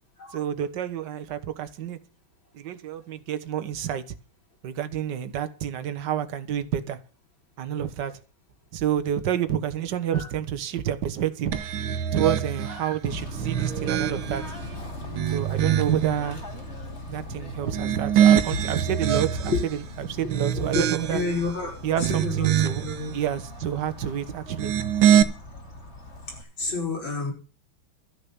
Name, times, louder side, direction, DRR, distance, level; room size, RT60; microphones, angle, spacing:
voice 1, 0.3-2.0 2.5-4.0 4.6-7.0 7.6-8.1 8.7-11.6 12.1-14.4 15.3-16.4 17.1-21.2 21.8-22.8 23.1-24.7, right 10 dB, 65° right, 1.8 m, -28 dB
sound 1, 11.5-12.8 13.4-14.5 15.0-16.1 17.6-19.7 20.2-21.4 21.8-23.0 24.4-25.2, right 10 dB, 80° right, 1.8 m, -23 dB
voice 2, 12.6-12.9 19.5-19.6 20.2-20.3 20.7-20.8 21.1-22.5 22.8-23.1 26.3-27.3, left 4 dB, 75° left, 6.0 m, -30 dB
Bird / Train, 13.0-26.4, left 1 dB, 35° left, 2.8 m, -40 dB
13.5 x 6.8 x 7.2 m
omnidirectional pair, 2.2 m